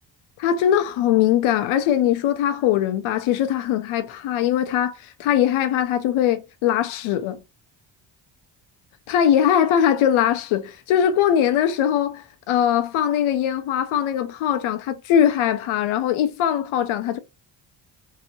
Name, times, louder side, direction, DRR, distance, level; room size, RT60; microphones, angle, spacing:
voice 1, 0.4-4.9 5.2-7.4 9.1-17.2, left 10 dB, 75° left, 0.6 m, -21 dB
2.8 x 2.0 x 2.7 m
supercardioid pair, 70°, 49 cm